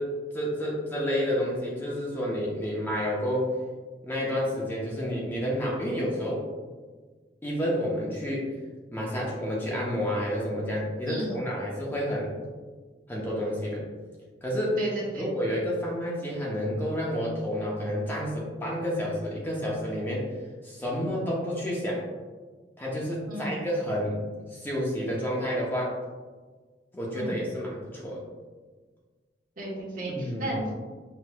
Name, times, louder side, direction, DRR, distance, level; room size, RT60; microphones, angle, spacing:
voice 1, 0.0-3.5 4.0-6.4 7.4-8.5 8.9-12.3 13.1-13.8 14.4-14.8 15.2-20.3 20.6-22.0 22.8-24.2 24.5-25.9 26.9-28.2 30.1-30.5, equal, 10° left, -4 dB, 0.6 m, -30 dB
voice 2, 11.1-11.4 14.8-15.3 23.3-23.6 27.1-27.4 29.6-30.7, right 1 dB, 50° right, -6 dB, 1.2 m, -34 dB
6.0 x 2.9 x 2.2 m, 1.4 s
head